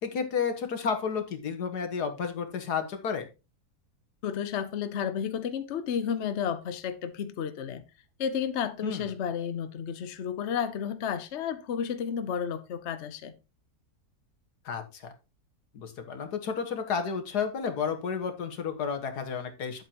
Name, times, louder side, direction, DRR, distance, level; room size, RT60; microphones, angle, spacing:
voice 1, 0.0-3.3 8.8-9.1 14.7-15.1 15.7-19.8, left 6 dB, 90° left, 1.9 m, -31 dB
voice 2, 4.2-7.8 8.2-13.3, left 8 dB, 55° left, 1.0 m, -32 dB
9.4 x 8.1 x 2.9 m
omnidirectional pair, 1.6 m